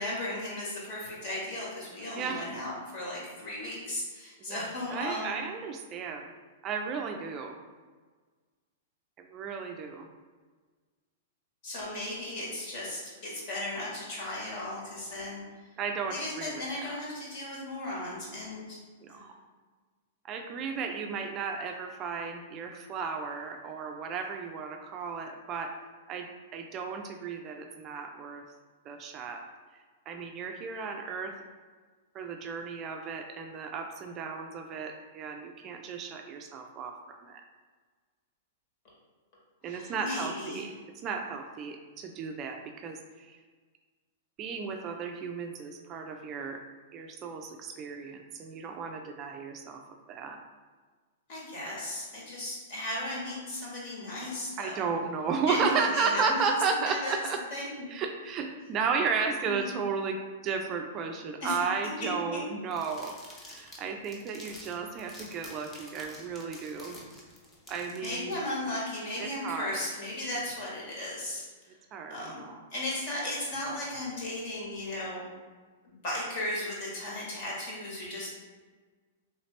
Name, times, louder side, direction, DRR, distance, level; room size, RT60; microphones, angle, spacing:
voice 1, 0.0-5.4 11.6-15.4 16.1-18.8 19.1-19.3 39.6-40.6 51.3-54.8 55.5-56.4 56.9-57.1 57.5-57.9 59.4-59.7 61.4-61.6 62.3-62.4 68.0-71.4 72.1-72.4 72.7-75.2 75.8-78.3, left 1 dB, 50° left, -5 dB, 1.5 m, -36 dB
voice 2, 4.9-6.3 6.6-7.6 9.2-10.1 15.8-17.0 19.0-19.3 20.2-25.7 26.1-28.4 28.9-29.4 30.1-31.3 32.1-37.4 39.6-40.7 41.0-43.4 44.4-46.6 46.9-49.8 50.1-50.4 54.6-57.4 57.9-60.2 60.4-63.2 63.5-67.0 67.7-68.3 69.2-69.8 71.9-72.6, right 5 dB, 30° right, 4 dB, 0.3 m, -34 dB
sound 1, 62.7-68.3, left 1 dB, 15° left, 0.7 m, -49 dB
3.2 x 2.8 x 3.1 m, 1.4 s
hypercardioid pair, 140°, 0 cm